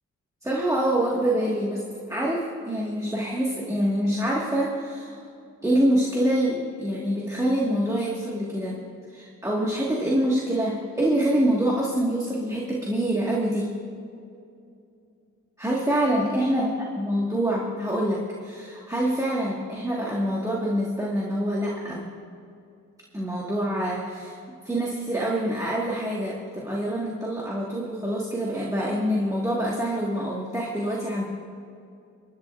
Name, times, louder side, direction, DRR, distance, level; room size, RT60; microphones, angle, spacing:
voice 1, 0.4-1.8 2.1-5.2 5.6-8.8 9.1-13.7 15.6-22.1 23.1-24.4 24.6-31.2, right 1 dB, 10° right, -4 dB, 1.6 m, -25 dB
27.5 x 11.5 x 2.5 m, 2.5 s
wide cardioid pair, 120°, 30 cm